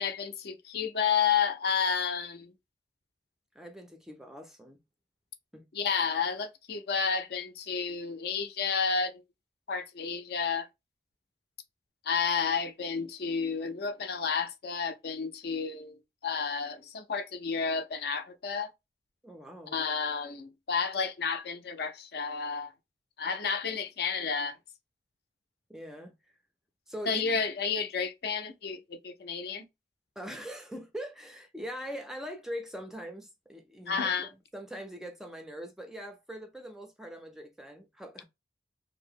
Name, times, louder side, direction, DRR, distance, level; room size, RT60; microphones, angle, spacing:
voice 1, 0.0-2.5 5.7-9.2 9.7-10.7 12.0-18.7 19.7-22.7 23.2-24.6 27.1-29.7 33.9-34.3, left 6 dB, 60° left, 0.5 m, -31 dB
voice 2, 3.5-4.8 5.5-5.6 19.2-19.8 25.7-26.1 26.9-27.2 30.2-34.2 34.5-38.2, equal, 5° right, 0.4 m, -42 dB
2.7 x 2.0 x 3.4 m
head